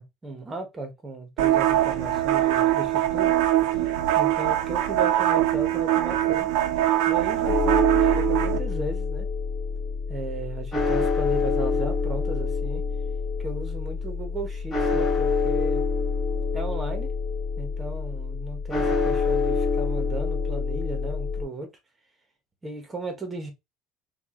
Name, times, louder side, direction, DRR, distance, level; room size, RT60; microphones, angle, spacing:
voice 1, 0.0-3.8 4.1-6.5 7.1-9.3 10.1-12.8 13.4-15.8 16.5-17.1 17.6-21.7 22.6-23.5, right 2 dB, 15° right, 1.3 m, -36 dB
sound 1, 1.4-8.6, right 13 dB, 80° right, 1.0 m, -22 dB
sound 2, 7.4-21.4, left 4 dB, 10° left, 2.0 m, -26 dB
4.7 x 2.7 x 3.8 m
cardioid pair, 165°, 0 cm